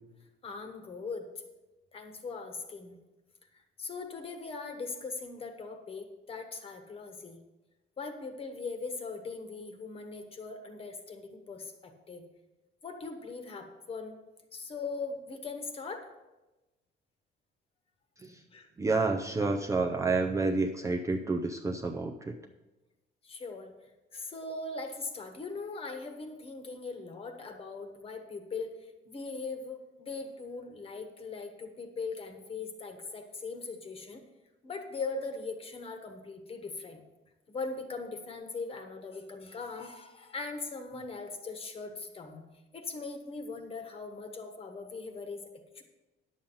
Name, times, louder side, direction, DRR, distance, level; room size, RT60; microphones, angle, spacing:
voice 1, 0.4-1.2 1.9-3.0 3.8-7.4 8.0-12.2 12.8-14.2 14.5-16.1 18.5-18.7 23.2-23.7 24.1-34.2 34.6-37.0 37.5-42.4 42.7-45.5 45.7-45.8, left 4 dB, 30° left, 5 dB, 1.2 m, -40 dB
voice 2, 18.8-22.3, right 3 dB, 15° right, 2 dB, 0.5 m, -29 dB
10.5 x 7.2 x 5.5 m, 1.1 s
cardioid pair, 155°, 19 cm